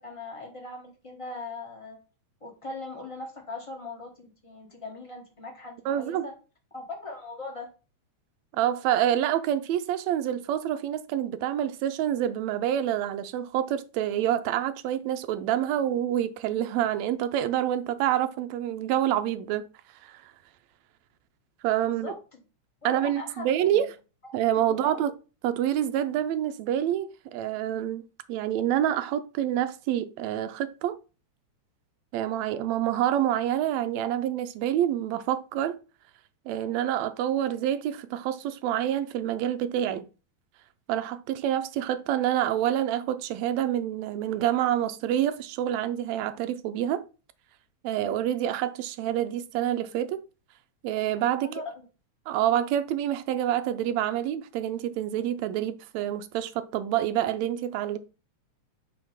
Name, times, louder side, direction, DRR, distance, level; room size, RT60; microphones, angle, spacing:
voice 1, 0.0-2.0 2.4-6.3 6.7-7.7 21.9-22.4 22.8-23.9 24.2-24.3 24.7-25.0 51.4-51.8, left 3 dB, 30° left, 0.6 m, -40 dB
voice 2, 5.9-6.3 8.5-19.7 20.0-20.1 21.6-22.1 22.9-23.9 24.3-25.1 25.4-28.0 28.3-31.0 32.1-35.8 36.5-40.1 40.9-47.0 47.8-50.2 50.8-51.5 52.3-58.0, right 11 dB, 80° right, 1.8 m, -27 dB
6.4 x 3.0 x 5.7 m
omnidirectional pair, 3.3 m